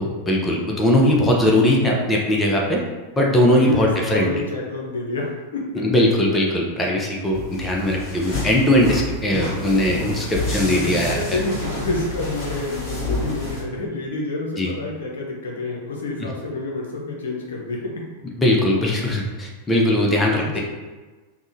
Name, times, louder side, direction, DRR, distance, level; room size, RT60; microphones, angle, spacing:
voice 1, 0.0-2.8 3.1-4.3 5.7-11.4 14.6-14.7 16.2-16.3 18.4-20.6, left 1 dB, 15° left, -1 dB, 0.4 m, -20 dB
voice 2, 3.5-5.9 10.6-17.9 20.4-20.5, left 2 dB, 65° left, -2 dB, 0.6 m, -28 dB
sound 1, 7.3-13.6, left 2 dB, 35° left, 1.3 m, -29 dB
3.5 x 2.1 x 2.6 m, 1.3 s
figure-of-eight pair, 90°, 0 cm